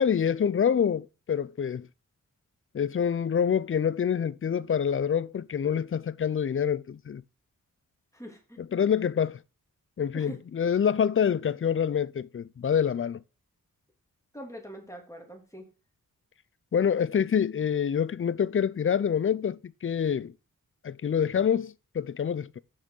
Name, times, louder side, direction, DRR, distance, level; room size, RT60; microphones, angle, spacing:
voice 1, 0.0-1.9 2.7-7.2 8.7-9.4 10.0-13.2 16.7-20.3 20.8-22.6, left 8 dB, 40° left, 0.5 m, -26 dB
voice 2, 8.1-8.9 10.1-10.4 14.3-15.6, right 1 dB, 10° left, 2.9 m, -44 dB
6.2 x 5.4 x 6.4 m
cardioid pair, 65°, 34 cm